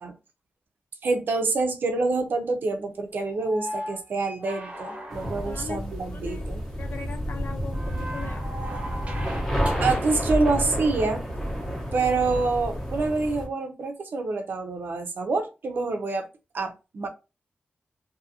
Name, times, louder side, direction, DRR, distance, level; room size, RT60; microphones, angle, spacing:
voice 1, 1.0-6.6 9.8-11.2 11.9-16.3 16.5-17.1, right 3 dB, 65° right, 0.6 m, -26 dB
sound 1, 3.4-5.9 7.7-10.2 11.8-11.9, equal, 35° right, 0.9 m, -37 dB
sound 2, 5.1-13.5, equal, 10° left, 0.9 m, -30 dB
voice 2, 5.5-5.8 6.1-6.5 6.8-8.5, left 6 dB, 55° left, 0.4 m, -39 dB
2.7 x 2.5 x 2.7 m
wide cardioid pair, 140°, 4 cm